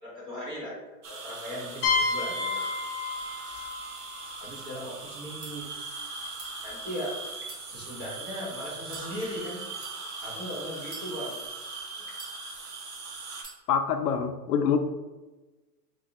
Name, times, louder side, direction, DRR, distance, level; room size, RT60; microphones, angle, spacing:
voice 1, 0.0-2.6 4.4-5.8 6.6-7.1 7.7-9.6 10.2-11.5 12.0-12.1, equal, 10° right, -5 dB, 0.6 m, -38 dB
sound 1, 1.0-13.4, right 4 dB, 70° right, 1.2 m, -40 dB
sound 2, 1.8-5.5, left 4 dB, 25° left, 0.9 m, -31 dB
sound 3, 5.4-5.5 6.2-6.5 7.3-8.3 8.8-9.1 9.7-10.0 10.8-11.5 12.1-12.8 13.3-13.6, right 4 dB, 50° right, 1.3 m, -46 dB
voice 2, 13.7-14.8, left 7 dB, 70° left, 8 dB, 0.6 m, -25 dB
4.1 x 3.9 x 2.5 m, 1.2 s
hypercardioid pair, 155°, 48 cm